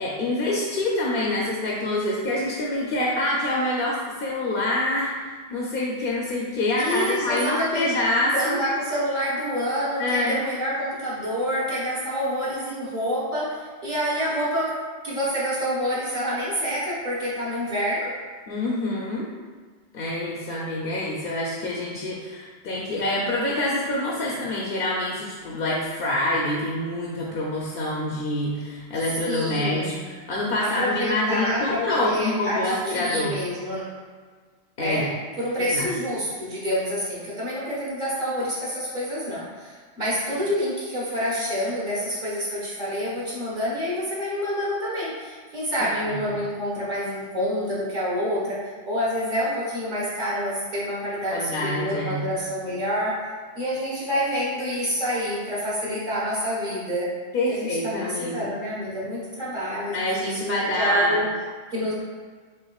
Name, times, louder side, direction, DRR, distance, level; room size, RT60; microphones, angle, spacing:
voice 1, 0.0-5.2 5.5-8.6 10.0-10.4 18.5-19.3 19.9-33.4 34.8-35.1 35.6-35.9 46.0-46.4 51.3-52.3 57.3-58.5 59.9-61.2, left 1 dB, 60° left, -4 dB, 0.7 m, -26 dB
voice 2, 6.8-7.9 8.3-18.1 29.3-29.9 30.6-33.8 34.8-35.1 35.4-53.2 53.5-57.1 57.5-61.3 61.7-61.9, equal, 50° right, -7 dB, 1.4 m, -27 dB
6.4 x 2.5 x 2.3 m, 1.5 s
omnidirectional pair, 1.1 m